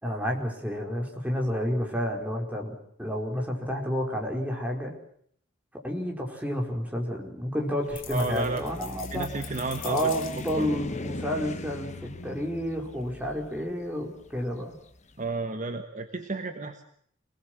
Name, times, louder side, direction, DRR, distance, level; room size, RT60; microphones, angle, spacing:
voice 1, 0.0-4.9 5.7-9.3 9.8-14.8, equal, 10° right, 0 dB, 4.6 m, -30 dB
sound 1, 7.8-15.0, left 2 dB, 35° left, 1.3 m, -40 dB
sound 2, 8.0-10.7, left 10 dB, 70° left, 2.8 m, -44 dB
voice 2, 8.1-8.6 9.1-10.1 10.5-10.8 15.2-16.9, right 3 dB, 40° right, 6 dB, 1.4 m, -32 dB
26.5 x 19.5 x 7.7 m, 0.66 s
head